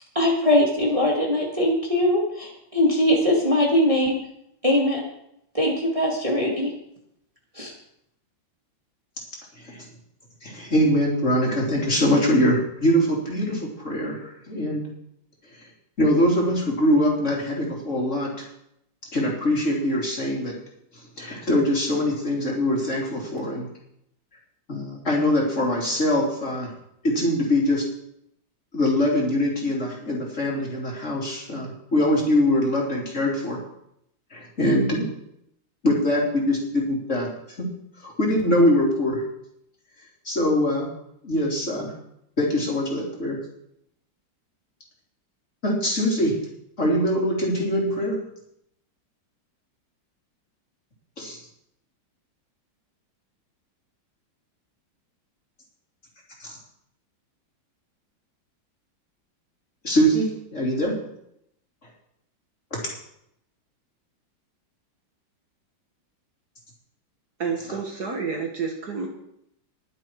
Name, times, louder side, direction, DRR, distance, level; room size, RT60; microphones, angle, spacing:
voice 1, 0.1-4.1 4.6-5.0 5.5-6.7 7.6-7.7, left 1 dB, 15° right, -2 dB, 2.3 m, -21 dB
voice 2, 10.4-14.9 16.0-18.4 19.1-20.6 20.9-23.7 24.7-26.7 27.0-27.8 28.7-33.6 34.3-35.1 35.8-37.3 37.6-37.7 38.0-39.2 40.3-40.9 41.2-41.9 42.4-43.4 45.6-46.4 46.8-48.2 51.2-51.4 56.4-56.5 59.8-61.0 62.7-62.8, equal, 35° left, -3 dB, 3.8 m, -23 dB
voice 3, 67.4-69.1, right 5 dB, 50° right, 2 dB, 2.1 m, -29 dB
21.5 x 7.6 x 4.8 m, 0.76 s
omnidirectional pair, 2.2 m